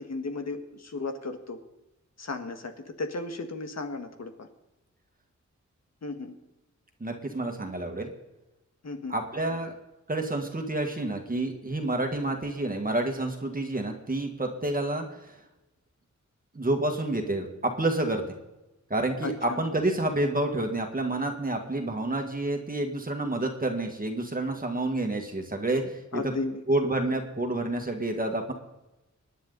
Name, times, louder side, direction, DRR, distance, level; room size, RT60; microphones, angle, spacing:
voice 1, 0.0-1.6 2.2-4.5 6.0-6.3 8.8-9.2 19.2-19.6 26.1-26.6, left 3 dB, 60° left, 6 dB, 1.7 m, -35 dB
voice 2, 7.0-8.1 9.1-9.7 10.1-15.3 16.5-18.2 18.9-26.3 26.7-28.5, right 2 dB, 30° right, 3 dB, 1.8 m, -29 dB
25.5 x 10.5 x 4.0 m, 1.0 s
wide cardioid pair, 120°, 30 cm